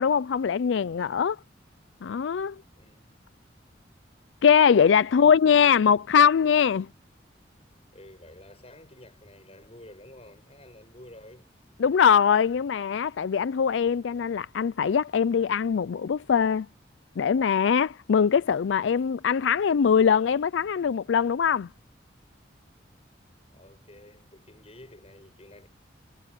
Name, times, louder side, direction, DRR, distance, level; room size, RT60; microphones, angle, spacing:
voice 1, 0.0-1.4 2.0-2.6 4.4-6.9 11.8-16.7 17.2-21.7, left 7 dB, 80° left, 0.4 m, -22 dB
voice 2, 2.7-3.1 5.1-5.4 7.9-11.6 23.5-25.7, left 1 dB, 35° left, 7.8 m, -50 dB
head